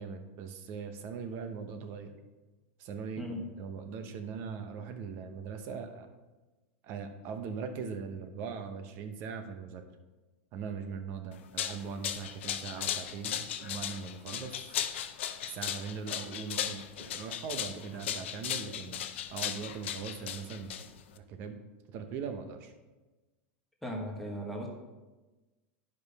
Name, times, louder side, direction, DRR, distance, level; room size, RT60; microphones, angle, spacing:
voice 1, 0.0-2.2 2.8-6.1 6.8-9.8 10.5-14.8 15.4-19.0 19.3-20.8 21.1-21.6 21.9-22.7, right 6 dB, 35° right, 7 dB, 0.8 m, -40 dB
voice 2, 3.2-3.5 23.8-24.7, equal, ahead, -1 dB, 1.1 m, -37 dB
sound 1, 11.3-21.2, left 10 dB, 85° left, 0.6 m, -37 dB
10.5 x 5.3 x 4.1 m, 1.2 s
supercardioid pair, 165°, 6 cm